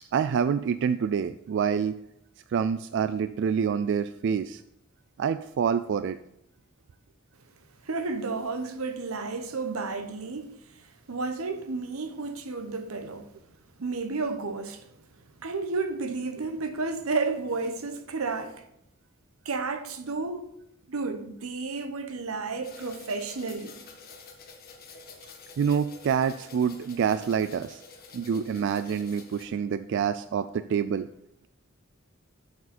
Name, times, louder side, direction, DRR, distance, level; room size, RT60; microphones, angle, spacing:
voice 1, 0.1-1.9 2.5-4.6 5.2-6.2 25.6-27.8 28.1-31.1, right 7 dB, 55° right, 0.3 m, -27 dB
voice 2, 7.8-10.8 11.1-13.3 13.8-14.9 15.4-18.6 19.4-20.5 20.9-23.8, right 3 dB, 85° right, 1.0 m, -32 dB
sound 1, 22.6-29.4, left 4 dB, 45° left, 1.4 m, -49 dB
8.4 x 6.9 x 4.3 m
head